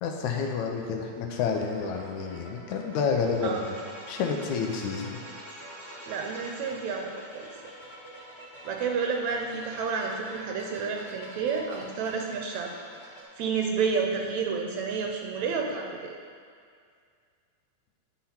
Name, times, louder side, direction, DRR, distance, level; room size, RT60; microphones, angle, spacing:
voice 1, 0.0-3.8 4.1-5.1, left 5 dB, 80° left, 2 dB, 2.0 m, -29 dB
sound 1, 1.3-13.2, equal, 25° left, 1.7 m, -48 dB
sound 2, 3.2-8.9, right 1 dB, 15° right, 2.1 m, -47 dB
voice 2, 6.1-7.5 8.7-12.7 13.4-16.1, right 5 dB, 75° right, 2 dB, 1.8 m, -30 dB
9.7 x 5.8 x 4.3 m, 2.1 s
omnidirectional pair, 3.6 m